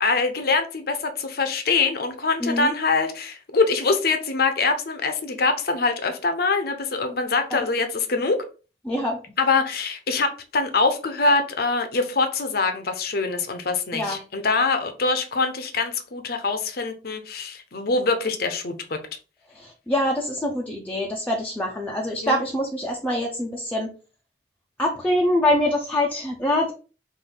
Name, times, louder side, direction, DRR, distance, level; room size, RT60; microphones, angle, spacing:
voice 1, 0.0-8.4 9.4-19.0 22.2-22.4, left 4 dB, 55° left, 0.8 m, -24 dB
voice 2, 2.4-2.7 7.5-7.6 8.8-9.2 13.9-14.2 19.5-23.9 24.8-26.7, left 1 dB, 10° left, 0.6 m, -24 dB
5.4 x 2.6 x 3.7 m
head